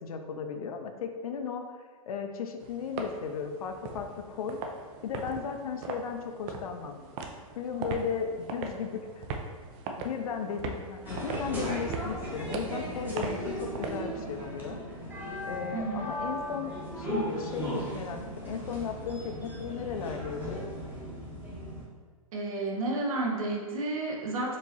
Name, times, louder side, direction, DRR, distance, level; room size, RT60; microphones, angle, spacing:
voice 1, 0.0-1.8 2.1-4.6 5.0-7.0 7.6-9.3 10.0-14.8 15.4-20.6, left 6 dB, 75° left, 6 dB, 0.5 m, -36 dB
sound 1, 2.6-14.0, right 4 dB, 30° right, 0.3 m, -40 dB
sound 2, 11.0-21.8, equal, 10° right, 0.9 m, -37 dB
voice 2, 15.7-16.1 22.3-24.6, right 2 dB, 70° right, 0 dB, 0.9 m, -31 dB
4.5 x 2.9 x 2.7 m, 1.5 s
hypercardioid pair, 135°, 19 cm